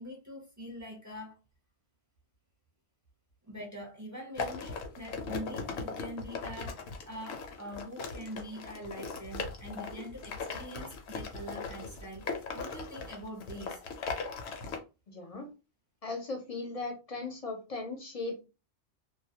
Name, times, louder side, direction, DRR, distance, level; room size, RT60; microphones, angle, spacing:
voice 1, 0.0-1.4 3.4-13.8, equal, 25° right, 0.4 m, -44 dB
sound 1, 4.4-14.8, left 4 dB, 75° left, 0.9 m, -39 dB
voice 2, 15.1-15.5 16.0-18.4, left 3 dB, 40° left, 0.6 m, -37 dB
2.2 x 2.0 x 2.8 m
omnidirectional pair, 1.2 m